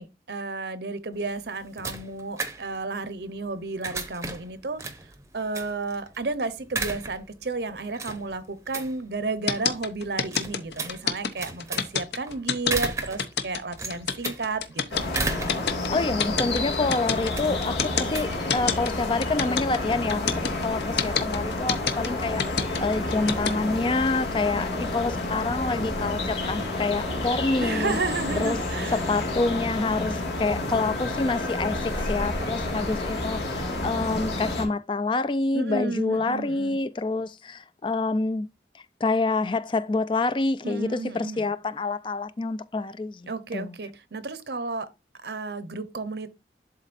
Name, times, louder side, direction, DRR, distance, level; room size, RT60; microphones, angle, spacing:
voice 1, 0.0-4.8 5.3-15.0 27.6-29.0 35.5-36.8 40.6-41.5 43.3-44.9 45.2-46.3, right 3 dB, 70° right, 0.8 m, -32 dB
sound 1, 1.1-19.1, right 3 dB, 15° right, 0.7 m, -36 dB
sound 2, 9.5-23.5, left 6 dB, 75° left, 0.9 m, -26 dB
sound 3, 14.9-34.7, left 2 dB, 90° left, 2.2 m, -30 dB
voice 2, 15.9-28.0 28.4-28.6 28.9-38.5 38.7-43.7, left 3 dB, 30° left, 0.3 m, -27 dB
11.5 x 4.0 x 2.5 m
head